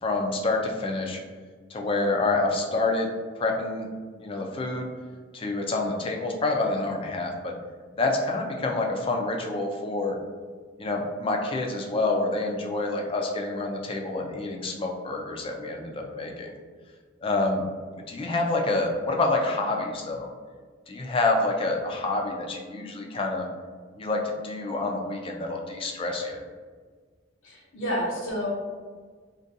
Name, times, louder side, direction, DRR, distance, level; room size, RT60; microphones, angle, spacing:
voice 1, 0.0-1.2 1.7-3.1 3.4-3.9 4.2-4.9 5.3-7.5 8.0-10.2 10.8-16.5 17.2-17.6 18.1-20.3 20.9-23.5 24.0-26.4, left 2 dB, 30° left, 1 dB, 0.3 m, -27 dB
voice 2, 27.4-28.5, equal, 80° left, -3 dB, 0.8 m, -29 dB
2.6 x 2.2 x 2.5 m, 1.5 s
head